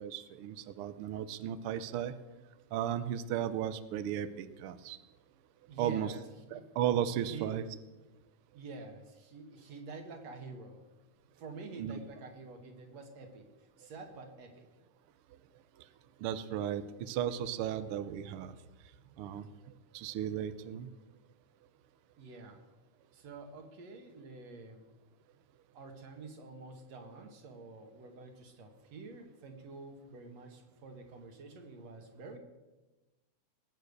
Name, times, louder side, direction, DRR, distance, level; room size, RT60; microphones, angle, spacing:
voice 1, 0.0-2.1 2.7-5.0 5.8-6.1 6.5-7.6 11.8-12.0 16.2-18.5 19.2-19.5 19.9-20.9, right 10 dB, 85° right, 12 dB, 1.2 m, -35 dB
voice 2, 5.7-6.2 6.5-6.8 7.3-7.6 8.5-10.8 11.3-13.5 13.8-14.7 22.2-22.6 23.1-24.8 25.7-32.4, right 4 dB, 60° right, 4 dB, 2.8 m, -48 dB
19.5 x 9.0 x 6.7 m, 1.1 s
omnidirectional pair, 3.5 m